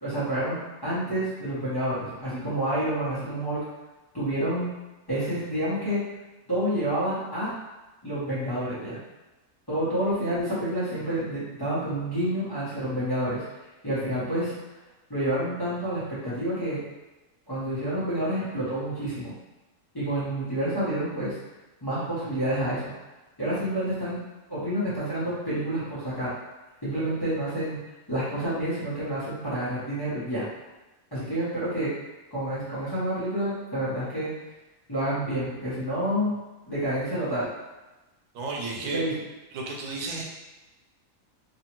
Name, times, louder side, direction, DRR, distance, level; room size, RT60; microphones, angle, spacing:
voice 1, 0.0-3.6 4.1-4.7 5.1-6.0 6.5-7.5 8.0-9.0 9.7-13.4 13.8-14.5 15.1-16.8 17.5-19.3 19.9-21.3 21.8-22.9 23.4-24.2 24.5-26.3 26.8-27.8 28.1-30.5 31.1-31.9 32.3-34.3 34.9-36.3 36.7-37.5 38.9-39.1, right 1 dB, 20° left, -12 dB, 1.0 m, -28 dB
voice 2, 38.3-39.0 39.5-40.2, right 3 dB, 85° right, -1 dB, 1.0 m, -32 dB
2.9 x 2.4 x 2.9 m, 1.1 s
omnidirectional pair, 1.4 m